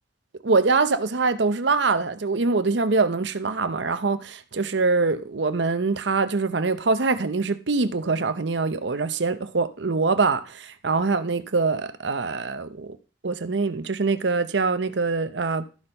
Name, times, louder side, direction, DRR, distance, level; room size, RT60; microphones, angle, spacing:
voice 1, 0.4-13.0 13.2-15.7, right 4 dB, 75° right, 0.8 m, -24 dB
13.0 x 4.4 x 5.4 m
head